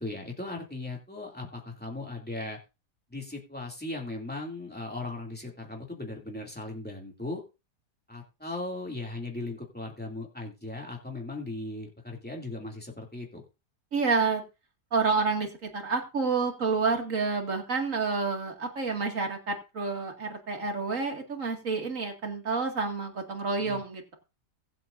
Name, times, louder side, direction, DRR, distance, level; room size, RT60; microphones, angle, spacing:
voice 1, 0.0-2.6 3.1-7.4 8.1-13.4 23.6-23.8, left 2 dB, 5° left, -1 dB, 2.6 m, -38 dB
voice 2, 13.9-14.4 14.9-24.2, right 4 dB, 50° right, 3 dB, 2.6 m, -29 dB
22.5 x 7.9 x 2.6 m, 0.29 s
omnidirectional pair, 1.7 m